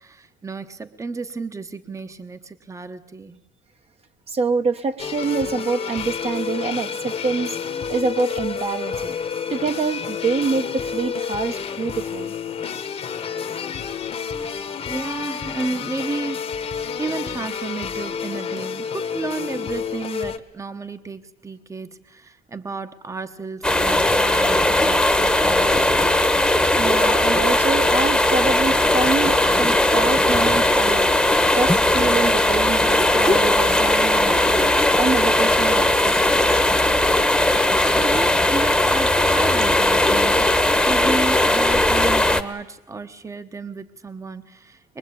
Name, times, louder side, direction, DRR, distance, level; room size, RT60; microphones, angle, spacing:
voice 1, 0.0-3.4 14.9-16.5 17.0-25.8 37.9-40.5 40.8-45.0, right 3 dB, 20° right, 10 dB, 1.2 m, -32 dB
voice 2, 4.3-7.6 7.9-9.1 9.5-12.3 26.8-31.1 31.5-36.4, right 4 dB, 35° right, 6 dB, 1.2 m, -26 dB
sound 1, 5.0-20.4, left 7 dB, 35° left, 1.4 m, -29 dB
sound 2, 23.6-42.4, left 1 dB, 5° left, 1.3 m, -18 dB
22.5 x 22.5 x 8.7 m, 0.94 s
cardioid pair, 110°, 17 cm